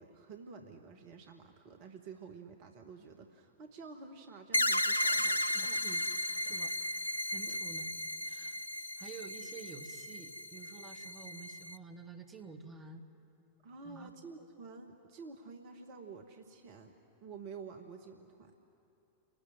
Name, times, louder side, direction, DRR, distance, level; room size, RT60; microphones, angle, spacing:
voice 1, 0.0-5.9 6.4-6.6 7.4-7.6 13.6-18.5, right 4 dB, 45° right, 5 dB, 1.7 m, -50 dB
sound 1, 4.5-11.8, left 1 dB, 85° left, 0.5 m, -35 dB
voice 2, 5.5-6.0 6.5-6.7 7.3-7.9 8.2-8.6 9.0-13.0 13.8-14.1, right 5 dB, 20° right, 5 dB, 2.4 m, -50 dB
30.0 x 19.0 x 7.8 m, 2.9 s
figure-of-eight pair, 90°, 0 cm